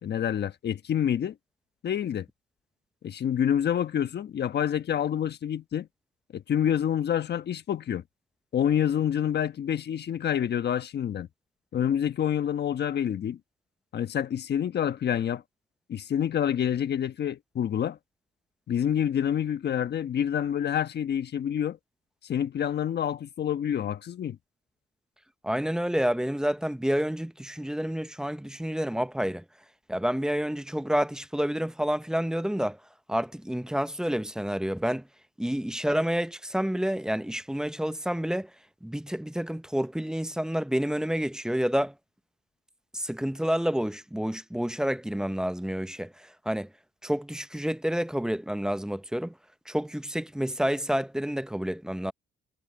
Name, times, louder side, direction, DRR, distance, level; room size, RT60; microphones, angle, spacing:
voice 1, 0.0-1.4 1.8-2.3 3.0-5.9 6.3-8.0 8.5-11.3 11.7-13.4 13.9-15.4 15.9-18.0 18.7-21.8 22.2-24.4, left 9 dB, 55° left, 1.3 m, -27 dB
voice 2, 25.4-29.4 29.9-32.8 33.1-35.1 35.4-38.5 38.8-41.9 42.9-46.7 47.0-49.3 49.7-52.1, equal, 5° right, 0.7 m, -29 dB
cardioid pair, 90°, 20 cm